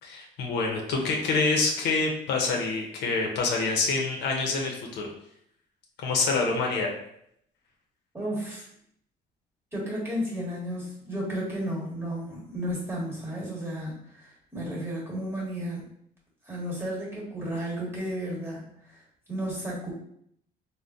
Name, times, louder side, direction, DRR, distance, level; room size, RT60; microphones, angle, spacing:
voice 1, 0.0-5.1 6.0-6.9, left 3 dB, 80° left, 0 dB, 0.7 m, -26 dB
voice 2, 8.1-8.7 9.7-15.8 16.5-19.0 19.3-19.9, equal, 15° right, -5 dB, 1.3 m, -33 dB
3.4 x 2.1 x 2.6 m, 0.72 s
cardioid pair, 110°, 17 cm